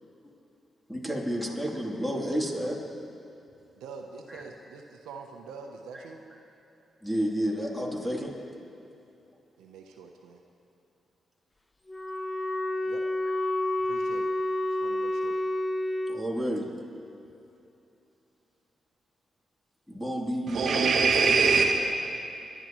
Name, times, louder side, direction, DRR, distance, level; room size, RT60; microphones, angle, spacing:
voice 1, 0.9-2.8 4.3-4.4 5.9-6.0 7.0-8.5 16.1-16.9 19.9-20.9, equal, 5° left, -2 dB, 3.2 m, -31 dB
voice 2, 1.4-1.8 3.8-6.2 9.6-10.4 12.8-13.0 13.9-14.3 14.8-15.4, right 5 dB, 85° right, 3 dB, 0.8 m, -45 dB
Wind instrument woodwind instrument, 11.9-16.2, left 1 dB, 20° left, 0.7 m, -29 dB
voice 3, 20.5-21.6, right 4 dB, 65° right, 1 dB, 1.2 m, -22 dB
23.5 x 11.5 x 3.1 m, 2.8 s
supercardioid pair, 50°, 0 cm